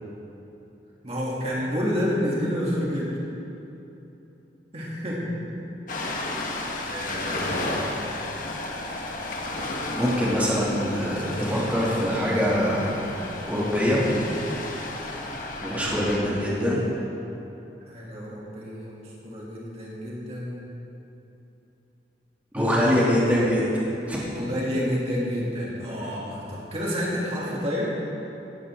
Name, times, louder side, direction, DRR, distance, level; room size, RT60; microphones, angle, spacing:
voice 1, 1.0-3.1 4.7-5.7 6.9-8.1 9.9-10.1 15.6-15.8 17.9-20.7 22.5-22.8 24.4-27.9, equal, 35° right, -6 dB, 2.8 m, -29 dB
Ocean, 5.9-16.2, left 2 dB, 50° left, 1.6 m, -33 dB
voice 2, 9.9-14.1 15.6-16.8 22.5-23.7 24.0-24.5, equal, 10° right, -8 dB, 2.7 m, -24 dB
18.5 x 14.5 x 3.8 m, 3.0 s
head